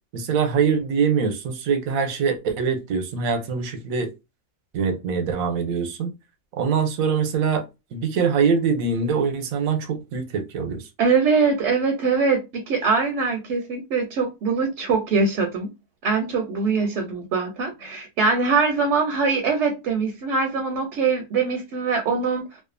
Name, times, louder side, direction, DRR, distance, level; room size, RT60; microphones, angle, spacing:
voice 1, 0.1-4.1 4.7-6.1 6.5-7.7 7.9-10.8, right 6 dB, 85° right, 1.0 m, -23 dB
voice 2, 11.0-15.7 16.0-22.5, right 4 dB, 65° right, 0.8 m, -22 dB
2.6 x 2.3 x 2.5 m
omnidirectional pair, 1.4 m